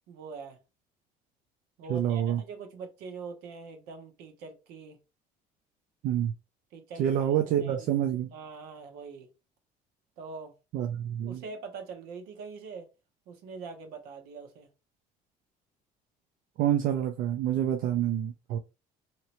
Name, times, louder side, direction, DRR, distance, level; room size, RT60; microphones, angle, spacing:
voice 1, 0.1-0.6 1.8-5.0 6.7-7.9 8.3-9.3 10.2-10.5 11.3-12.9 13.3-14.7, right 4 dB, 80° right, 1.0 m, -43 dB
voice 2, 1.9-2.4 6.0-6.3 7.0-8.3 10.7-11.4 16.6-18.6, right 10 dB, 55° right, 0.4 m, -27 dB
3.0 x 2.9 x 2.9 m
cardioid pair, 175°, 16 cm